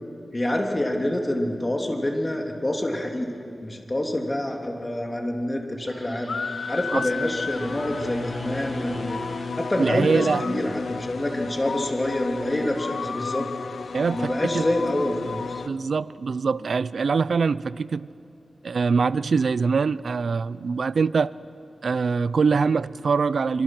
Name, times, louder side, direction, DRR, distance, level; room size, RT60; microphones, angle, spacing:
voice 1, 0.3-3.3 3.6-6.4 6.7-9.2 9.6-13.4 14.1-15.6, left 1 dB, 25° left, 2.9 m, -27 dB
sound 1, 5.8-11.1, right 1 dB, 15° right, 7.2 m, -41 dB
sound 2, 6.3-15.7, left 5 dB, 80° left, 0.6 m, -32 dB
voice 2, 9.8-10.4 13.9-14.6 15.7-18.1 18.6-21.3 21.8-23.6, right 5 dB, 75° right, 0.5 m, -23 dB
26.5 x 24.5 x 6.0 m
wide cardioid pair, 75°, 0 cm